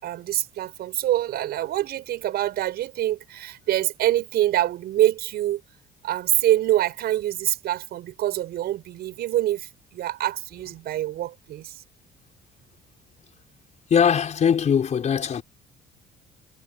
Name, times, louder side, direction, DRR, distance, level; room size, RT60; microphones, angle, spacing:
voice 1, 0.0-5.6 6.0-11.7, right 13 dB, 70° right, 6.9 m, -25 dB
voice 2, 13.9-15.4, left 7 dB, 45° left, 5.6 m, -20 dB
cardioid pair, 110°, 17 cm